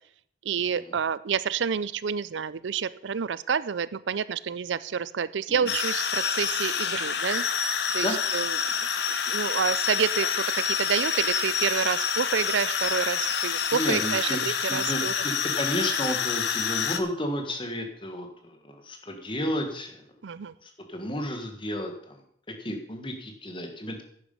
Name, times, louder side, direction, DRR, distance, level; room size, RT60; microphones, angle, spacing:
voice 1, 0.4-7.5 7.9-8.1 8.3-8.6 9.1-15.2 20.2-20.5, right 7 dB, 85° right, 17 dB, 0.5 m, -29 dB
sound 1, 5.7-17.0, left 7 dB, 65° left, 1.0 m, -27 dB
voice 2, 13.7-20.0 20.6-22.2 22.5-24.0, equal, 25° left, 4 dB, 1.6 m, -32 dB
11.0 x 9.6 x 5.5 m, 0.66 s
head